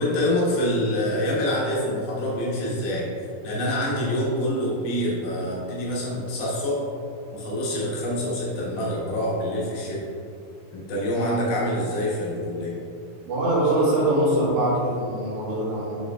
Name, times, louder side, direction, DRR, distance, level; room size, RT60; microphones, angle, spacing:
voice 1, 0.0-3.1 3.4-6.8 7.3-10.0 10.7-12.8, left 1 dB, 65° left, -5 dB, 2.5 m, -26 dB
voice 2, 13.3-16.0, right 1 dB, 50° right, -7 dB, 2.0 m, -23 dB
7.0 x 6.6 x 3.4 m, 2.6 s
omnidirectional pair, 5.5 m